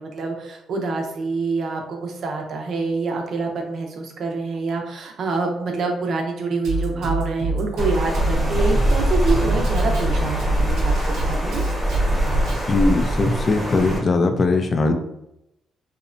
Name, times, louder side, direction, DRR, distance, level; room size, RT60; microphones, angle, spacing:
voice 1, 0.0-11.6, right 3 dB, 65° right, 2 dB, 0.5 m, -26 dB
Drum kit, 6.6-12.6, right 2 dB, 85° right, 0.8 m, -26 dB
Water, 7.8-14.0, equal, ahead, 0.9 m, -22 dB
voice 2, 12.7-14.9, left 3 dB, 40° left, 6 dB, 0.3 m, -20 dB
2.8 x 2.1 x 2.5 m, 0.82 s
cardioid pair, 90°, 0 cm